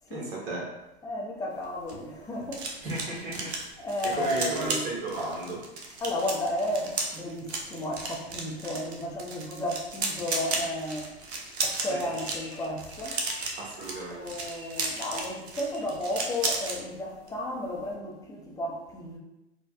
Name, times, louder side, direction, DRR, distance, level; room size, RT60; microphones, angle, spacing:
voice 1, 0.1-0.7 2.8-3.5 4.0-5.6 13.5-14.3, right 2 dB, 60° right, -4 dB, 1.3 m, -34 dB
voice 2, 1.0-2.7 3.8-4.9 6.0-11.1 11.6-13.2 14.1-19.2, left 1 dB, 10° left, -2 dB, 0.6 m, -33 dB
sound 1, 1.6-16.8 17.1-17.4 17.6-17.9, right 3 dB, 80° right, 0.7 m, -34 dB
sound 2, 11.6-16.4, left 2 dB, 90° left, 0.9 m, -49 dB
4.1 x 2.3 x 2.3 m, 0.95 s
hypercardioid pair, 100°, 32 cm